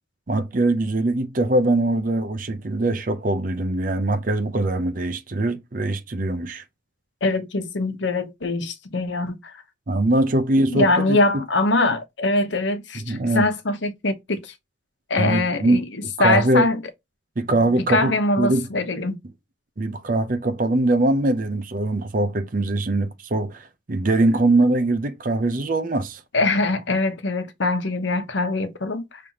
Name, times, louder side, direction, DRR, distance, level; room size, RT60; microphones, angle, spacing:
voice 1, 0.3-6.6 9.9-11.4 12.9-13.5 15.2-16.7 17.4-18.7 19.8-26.2, right 2 dB, 45° right, 0.6 m, -22 dB
voice 2, 7.2-9.6 10.7-14.5 15.1-15.8 16.2-16.8 17.9-19.2 26.3-29.2, left 2 dB, 75° left, 0.9 m, -23 dB
5.5 x 3.3 x 2.9 m
head